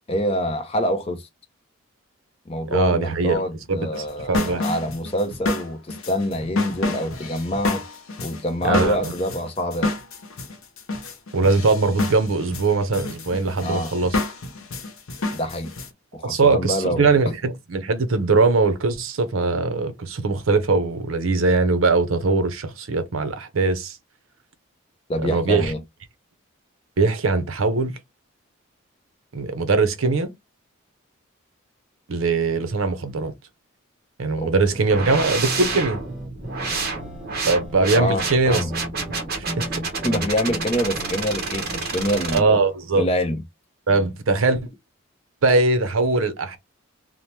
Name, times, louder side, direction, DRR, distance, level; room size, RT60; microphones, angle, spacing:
voice 1, 0.1-1.3 2.5-7.8 8.2-9.9 13.6-13.9 15.3-15.7 16.1-17.1 25.1-25.8 34.4-34.5 37.9-38.7 40.0-42.6 42.9-43.4, equal, 25° left, 0.5 m, -26 dB
voice 2, 2.7-3.4 3.7-4.7 8.6-9.1 11.3-14.2 16.2-24.0 25.2-25.7 27.0-27.9 29.3-30.3 32.1-33.3 34.2-36.0 37.4-38.6 39.1-39.2 39.6-39.7 42.3-43.1 43.9-44.7 45.4-46.6, right 3 dB, 75° right, 0.6 m, -21 dB
sound 1, 3.9-15.9, left 2 dB, 80° left, 0.7 m, -29 dB
sound 2, 34.7-41.3, equal, 5° right, 0.9 m, -37 dB
sound 3, 34.9-42.4, right 4 dB, 45° right, 0.8 m, -29 dB
2.9 x 2.0 x 3.1 m
head